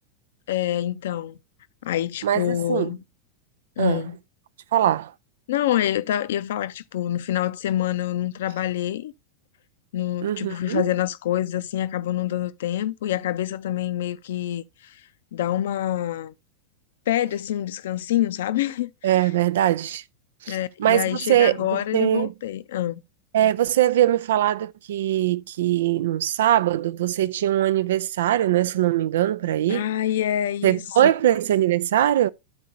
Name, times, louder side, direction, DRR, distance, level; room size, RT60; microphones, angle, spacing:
voice 1, 0.5-1.4 1.8-3.0 3.8-4.2 5.5-9.1 9.9-14.9 15.3-16.3 17.1-18.9 20.5-23.0 29.7-30.8, left 12 dB, 55° left, 0.6 m, -26 dB
voice 2, 2.2-2.9 3.8-4.1 4.7-5.1 10.2-10.9 19.0-20.0 20.4-22.3 23.3-29.9 30.6-32.3, right 12 dB, 60° right, 0.4 m, -21 dB
13.5 x 4.6 x 2.6 m
figure-of-eight pair, 90°, 0 cm